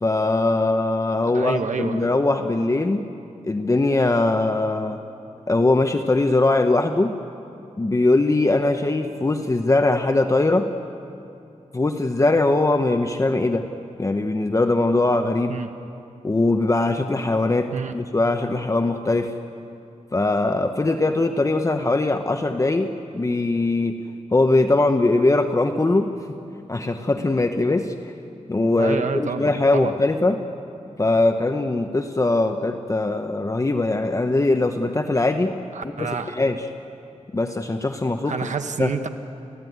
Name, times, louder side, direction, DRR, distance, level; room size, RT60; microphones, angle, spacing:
voice 1, 0.0-3.0 3.4-5.0 5.5-7.1 7.8-10.7 11.7-13.7 14.0-15.6 16.2-19.3 20.1-23.9 24.3-26.1 26.7-28.1 28.5-30.4 31.0-35.5 36.0-36.7 37.3-38.4 38.8-38.9, left 2 dB, 25° left, 6 dB, 1.0 m, -21 dB
voice 2, 1.3-2.1 15.5-15.7 17.7-17.9 28.8-29.9 35.7-36.4 38.2-39.1, right 5 dB, 75° right, 7 dB, 1.3 m, -28 dB
30.0 x 15.5 x 9.5 m, 2.7 s
wide cardioid pair, 115°, 13 cm